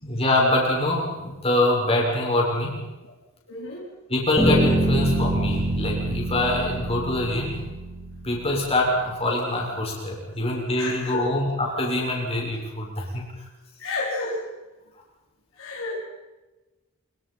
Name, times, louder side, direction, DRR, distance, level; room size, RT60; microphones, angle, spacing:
voice 1, 0.0-2.9 4.1-7.6 8.2-13.5, left 1 dB, 30° left, -2 dB, 7.0 m, -24 dB
voice 2, 3.5-3.9 10.8-11.2 13.8-14.4 15.6-16.0, left 3 dB, 65° left, -2 dB, 4.3 m, -31 dB
sound 1, 4.4-8.3, right 1 dB, 10° left, 7.9 m, -25 dB
25.0 x 24.5 x 5.8 m, 1.1 s
head